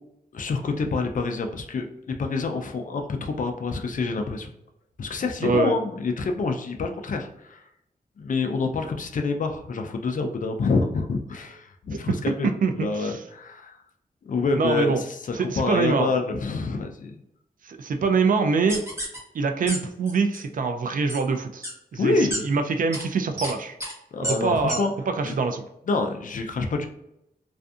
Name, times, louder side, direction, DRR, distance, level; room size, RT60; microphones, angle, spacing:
voice 1, 0.3-4.5 5.0-7.6 8.2-12.5 12.8-13.8 14.2-17.1 22.0-22.5 24.1-24.9 25.2-25.3 25.9-26.9, left 3 dB, 55° left, 4 dB, 0.4 m, -27 dB
voice 2, 5.4-5.8 11.9-12.2 12.4-13.2 14.5-15.0 15.3-16.2 17.6-18.8 19.3-23.8 24.2-25.6, right 4 dB, 60° right, 6 dB, 0.4 m, -24 dB
sound 1, 18.7-19.2 19.7-19.8 20.1-20.4 21.1-21.2 21.6-21.7 22.3-22.4 22.9-23.0 23.4-23.5 23.8-23.9 24.2-24.3 24.7-24.8 25.3-25.4, right 1 dB, 15° right, 1.1 m, -30 dB
2.5 x 2.5 x 2.3 m, 0.81 s
wide cardioid pair, 115°, 16 cm